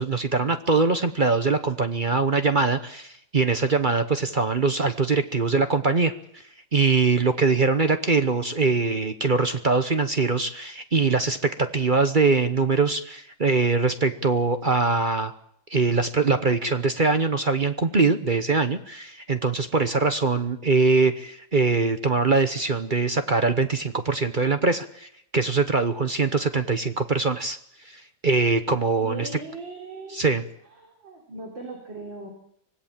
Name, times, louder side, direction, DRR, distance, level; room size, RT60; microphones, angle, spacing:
voice 1, 0.0-6.1 6.7-15.3 15.7-27.6 27.9-29.3 30.1-30.4, right 4 dB, 35° right, 9 dB, 0.9 m, -22 dB
voice 2, 29.0-30.2 30.7-32.3, right 2 dB, 85° right, 0 dB, 4.5 m, -38 dB
25.0 x 17.5 x 7.4 m, 0.71 s
omnidirectional pair, 2.0 m